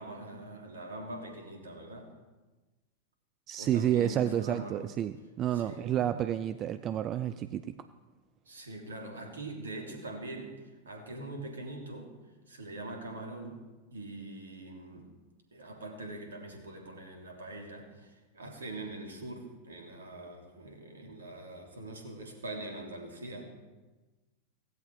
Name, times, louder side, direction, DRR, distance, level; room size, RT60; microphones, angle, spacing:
voice 1, 0.0-2.1 3.6-4.9 5.5-6.1 8.4-12.1 12.5-15.1 15.5-23.5, right 2 dB, 70° right, 2 dB, 3.2 m, -43 dB
voice 2, 3.5-7.8, right 10 dB, 30° right, 12 dB, 0.5 m, -30 dB
17.0 x 16.5 x 4.9 m, 1.2 s
figure-of-eight pair, 90°, 0 cm